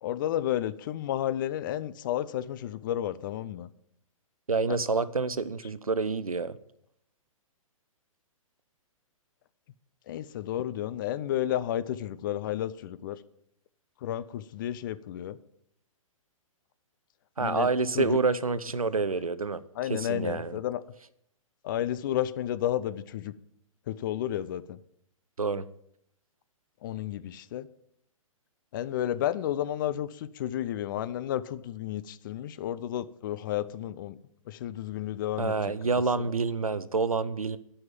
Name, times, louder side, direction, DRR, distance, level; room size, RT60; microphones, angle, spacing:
voice 1, 0.0-3.7 4.7-4.8 10.1-13.2 14.0-15.4 17.4-17.7 17.9-18.2 19.8-20.8 21.6-23.3 23.9-24.8 26.8-27.7 28.7-34.2 34.5-35.5 36.2-36.3, left 12 dB, 35° left, 0.5 m, -32 dB
voice 2, 4.5-6.6 17.4-19.6 19.9-20.6 25.4-25.7 35.4-37.6, right 4 dB, 85° right, 0.6 m, -28 dB
10.5 x 5.6 x 7.3 m
figure-of-eight pair, 120°, 18 cm